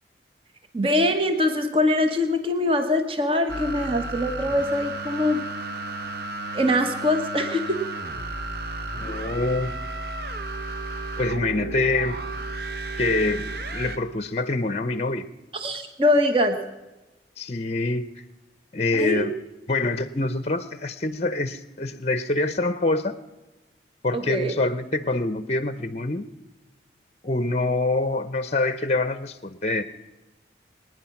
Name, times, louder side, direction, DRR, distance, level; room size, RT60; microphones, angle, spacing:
voice 1, 0.7-5.4 6.5-7.8 15.5-16.6 18.9-19.3 24.1-24.5, left 1 dB, 30° right, 6 dB, 1.1 m, -23 dB
sound 1, 3.5-14.0, right 2 dB, 55° right, 0.8 m, -33 dB
voice 2, 8.9-9.7 11.2-12.2 13.0-15.3 17.4-18.1 18.7-19.3 19.7-23.2 24.0-26.3 27.2-29.8, left 2 dB, 35° left, 13 dB, 0.6 m, -25 dB
24.0 x 9.8 x 5.9 m, 1.1 s
head